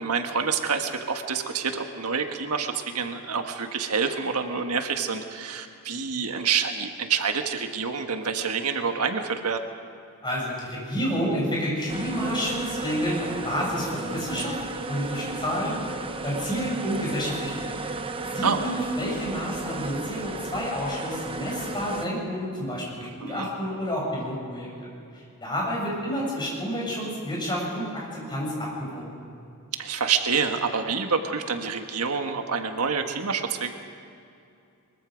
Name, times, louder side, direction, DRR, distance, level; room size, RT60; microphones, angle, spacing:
voice 1, 0.0-9.6 18.4-18.6 23.0-23.5 29.8-33.7, right 5 dB, 85° right, 5 dB, 1.5 m, -27 dB
voice 2, 10.2-14.6 14.9-15.8 16.2-17.6 18.3-24.7 25.1-29.1, equal, 20° left, -4 dB, 7.1 m, -29 dB
sound 1, 11.9-22.1, right 3 dB, 25° right, 0.9 m, -34 dB
23.0 x 22.5 x 5.2 m, 2.6 s
head